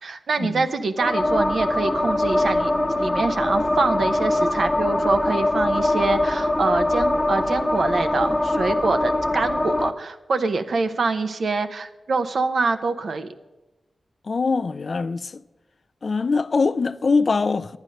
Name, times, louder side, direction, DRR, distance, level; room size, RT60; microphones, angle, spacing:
voice 1, 0.0-2.7 3.0-13.3, right 4 dB, 75° right, 0.8 m, -25 dB
sound 1, 1.0-9.9, left 1 dB, 30° left, 0.9 m, -22 dB
voice 2, 14.3-15.4 16.0-17.8, left 4 dB, 60° left, 0.5 m, -23 dB
10.5 x 9.2 x 6.4 m
cardioid pair, 55°, 0 cm